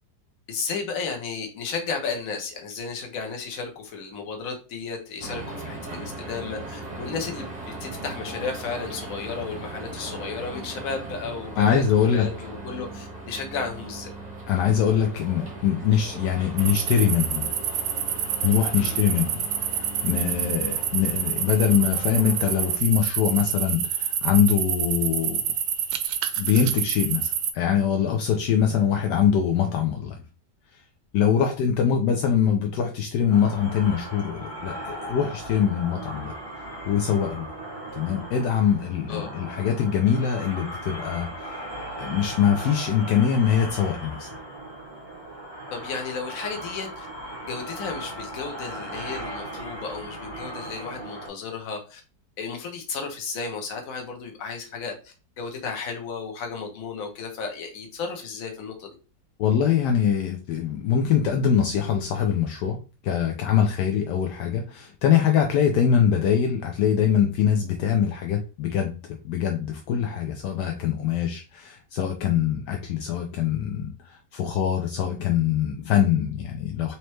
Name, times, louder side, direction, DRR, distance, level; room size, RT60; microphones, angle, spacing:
voice 1, 0.5-14.1 18.8-19.0 39.1-39.3 45.7-47.1 47.5-52.0 52.4-58.9, left 5 dB, 55° left, 2 dB, 1.3 m, -33 dB
sound 1, 5.2-22.8, right 2 dB, 30° right, 0.8 m, -38 dB
voice 2, 11.6-12.3 14.5-17.5 18.4-19.5 20.0-25.4 26.4-30.2 31.1-36.3 36.8-37.5 37.9-41.6 42.0-44.4 59.4-62.8 63.0-69.0 69.2-76.9, left 8 dB, 75° left, 4 dB, 1.1 m, -23 dB
sound 2, 16.6-27.5, right 9 dB, 75° right, 1.1 m, -27 dB
sound 3, 33.3-51.3, right 1 dB, 20° left, 1.4 m, -37 dB
4.2 x 3.1 x 3.1 m, 0.33 s
omnidirectional pair, 1.9 m